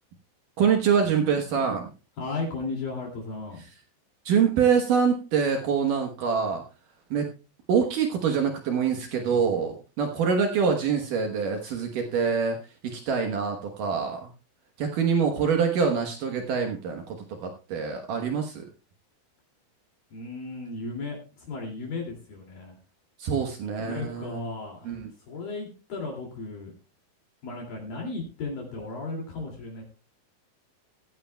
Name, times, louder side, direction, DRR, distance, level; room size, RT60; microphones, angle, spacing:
voice 1, 0.6-1.9 4.3-6.6 7.1-7.3 7.7-14.3 14.8-18.6 23.2-24.4 24.8-25.1, right 6 dB, 85° right, 3 dB, 1.8 m, -25 dB
voice 2, 2.2-3.6 20.1-22.8 23.6-26.7 27.4-29.8, left 3 dB, 50° left, -1 dB, 3.9 m, -35 dB
16.0 x 14.5 x 2.3 m, 0.33 s
omnidirectional pair, 5.8 m